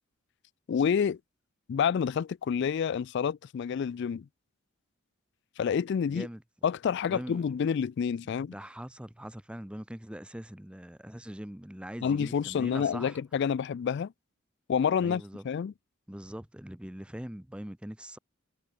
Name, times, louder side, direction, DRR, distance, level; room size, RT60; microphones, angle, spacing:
voice 1, 0.7-1.2 1.7-4.3 5.6-6.3 6.6-8.5 12.0-14.1 14.7-15.7, left 7 dB, 55° left, 0.3 m, -28 dB
voice 2, 6.1-6.4 7.1-7.4 8.5-13.2 15.0-15.4 16.1-18.2, equal, 5° right, 0.7 m, -42 dB
head